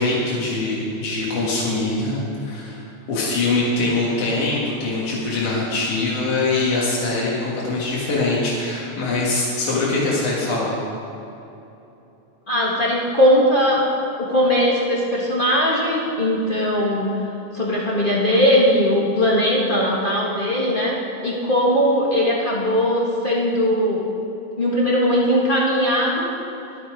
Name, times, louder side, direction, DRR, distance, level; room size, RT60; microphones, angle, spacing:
voice 1, 0.0-2.8 3.1-10.8, left 2 dB, 65° left, -6 dB, 3.1 m, -23 dB
voice 2, 12.5-13.8 14.2-17.1 17.5-21.0 21.2-24.0 24.6-26.3, equal, 35° left, -5 dB, 0.7 m, -19 dB
21.5 x 7.2 x 5.0 m, 2.9 s
omnidirectional pair, 3.8 m